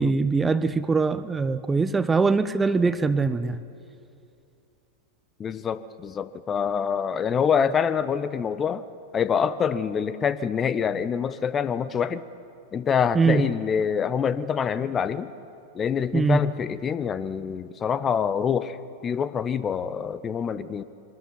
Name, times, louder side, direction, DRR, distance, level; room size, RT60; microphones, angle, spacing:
voice 1, 0.0-3.6 13.1-13.4 16.1-16.4, right 4 dB, 15° right, 14 dB, 0.7 m, -22 dB
voice 2, 5.4-8.8 9.1-12.2 12.7-15.3 15.7-18.8 19.0-20.8, left 7 dB, 25° left, 15 dB, 0.7 m, -26 dB
23.5 x 13.0 x 9.9 m, 2.6 s
figure-of-eight pair, 90°, 0 cm